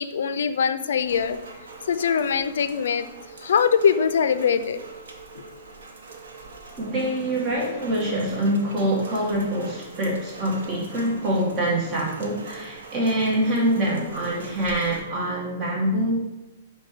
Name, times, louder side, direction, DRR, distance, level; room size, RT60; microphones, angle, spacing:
voice 1, 0.0-1.4 1.9-3.1 3.4-4.8 7.6-7.7, left 7 dB, 80° left, 11 dB, 0.3 m, -22 dB
Rain, 1.0-15.0, right 4 dB, 85° right, 0.8 m, -43 dB
voice 2, 6.8-16.2, right 1 dB, 30° right, -4 dB, 1.0 m, -25 dB
5.0 x 2.2 x 4.7 m, 0.99 s
hypercardioid pair, 145°, 0 cm